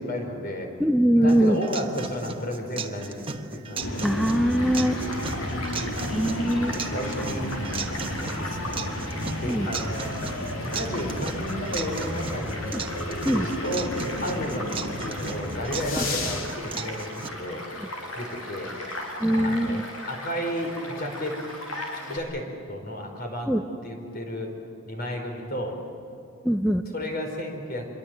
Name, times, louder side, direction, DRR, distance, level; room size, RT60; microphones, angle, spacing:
voice 1, 0.0-0.7 1.1-4.4 4.6-4.7 5.5-5.8 6.7-7.5 8.2-8.9 9.4-10.2 10.6-12.8 13.3-17.7 18.1-18.7 19.4-21.4 21.9-23.5 23.8-24.5 24.8-25.8 26.9-27.9, equal, 45° left, 3 dB, 4.7 m, -33 dB
voice 2, 0.8-1.6 4.0-4.9 6.1-6.7 9.5-9.7 12.7-12.8 13.2-13.5 16.0-16.1 17.8-17.9 19.2-19.8 23.5-23.6 26.4-26.8, equal, ahead, 4 dB, 0.7 m, -22 dB
sound 1, 1.3-17.3, right 4 dB, 25° right, 1.1 m, -37 dB
sound 2, 3.8-16.5, left 1 dB, 65° left, 3.3 m, -33 dB
Child speech kid speaking / Stream / Car passing by, 4.6-22.2, left 1 dB, 90° left, 6.6 m, -37 dB
27.0 x 23.0 x 7.8 m, 2.5 s
head